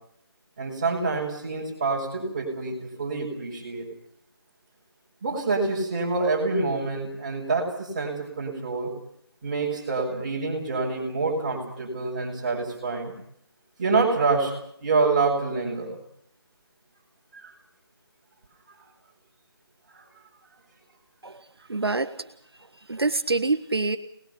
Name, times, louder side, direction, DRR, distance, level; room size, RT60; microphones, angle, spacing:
voice 1, 0.6-3.9 5.2-8.9 9.4-13.1 13.8-14.5 14.8-16.0 17.3-17.5 19.9-20.0, right 3 dB, 20° right, -3 dB, 6.6 m, -26 dB
voice 2, 21.7-22.3 22.9-24.0, right 3 dB, 70° right, 8 dB, 1.4 m, -26 dB
26.0 x 20.5 x 7.0 m, 0.69 s
figure-of-eight pair, 175°, 13 cm